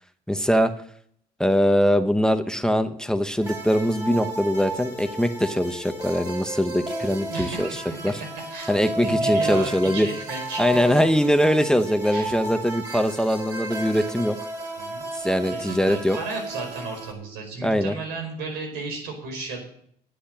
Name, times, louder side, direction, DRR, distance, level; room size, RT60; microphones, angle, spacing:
voice 1, 0.3-0.7 1.4-8.1 8.7-10.1 10.6-14.4 15.1-16.2 17.6-17.9, equal, 5° left, 10 dB, 0.8 m, -22 dB
sound 1, 3.4-17.1, right 2 dB, 20° right, 4.1 m, -32 dB
voice 2, 7.3-8.0 8.5-10.7 12.1-12.2 14.8-15.0 15.5-19.6, right 3 dB, 85° right, 3 dB, 5.0 m, -34 dB
10.5 x 7.9 x 8.8 m, 0.63 s
cardioid pair, 110°, 17 cm